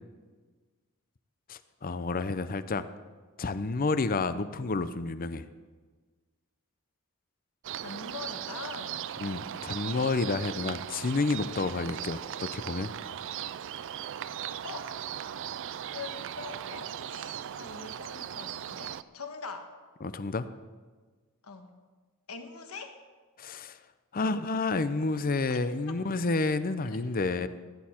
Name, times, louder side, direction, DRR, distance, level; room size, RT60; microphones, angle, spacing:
voice 1, 1.5-2.9 3.4-5.5 9.2-12.9 20.0-20.5 23.4-23.8 24.1-27.5, left 3 dB, 40° left, 12 dB, 0.6 m, -30 dB
sound 1, 7.6-19.0, right 10 dB, 60° right, 0.4 m, -38 dB
voice 2, 7.8-9.0 14.6-15.0 15.8-19.7 21.4-21.7 22.3-23.0 25.5-25.6 26.1-26.3 26.9-27.0, left 4 dB, 75° left, 6 dB, 1.4 m, -43 dB
16.0 x 10.5 x 4.4 m, 1.4 s
head